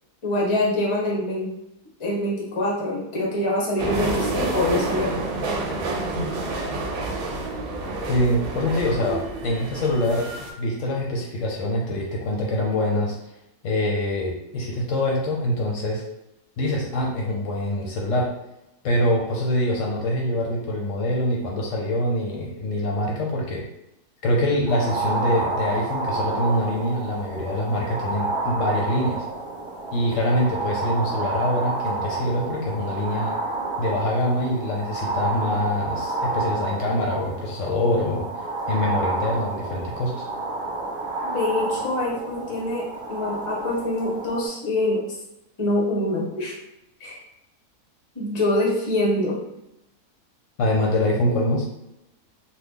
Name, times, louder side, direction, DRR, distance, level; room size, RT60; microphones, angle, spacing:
voice 1, 0.2-1.5 2.0-5.1 41.2-45.0 45.6-46.6 47.0-47.2 48.1-49.4, left 1 dB, 35° left, -3 dB, 0.5 m, -25 dB
sound 1, 3.8-10.5, right 2 dB, 70° right, 1.0 m, -28 dB
voice 2, 8.1-10.3 10.6-13.2 13.6-16.0 16.6-18.3 18.8-23.6 24.2-29.3 29.9-33.4 33.8-38.3 38.7-40.1 50.6-51.7, left 1 dB, 65° left, -2 dB, 0.8 m, -24 dB
sound 2, 24.7-44.5, right 2 dB, 50° right, 0.7 m, -30 dB
3.0 x 2.2 x 3.5 m, 0.86 s
omnidirectional pair, 1.6 m